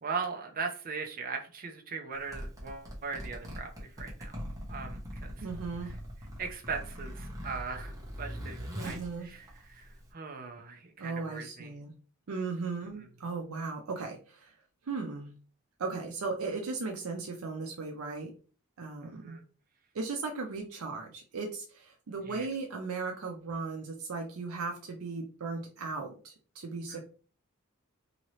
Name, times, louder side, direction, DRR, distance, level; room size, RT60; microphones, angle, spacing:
voice 1, 0.0-4.4 4.7-5.5 5.9-6.0 6.4-11.7 19.0-19.4 22.3-22.5 26.9-27.0, right 5 dB, 45° right, 4 dB, 0.5 m, -39 dB
Zipper (clothing), 2.1-10.1, equal, 15° right, 0.9 m, -42 dB
voice 2, 5.4-6.0 8.8-9.3 11.0-11.9 12.3-14.5 14.8-15.3 15.8-18.3 18.8-19.4 19.9-27.0, right 4 dB, 90° right, 2 dB, 0.5 m, -37 dB
2.8 x 2.7 x 3.1 m, 0.38 s
head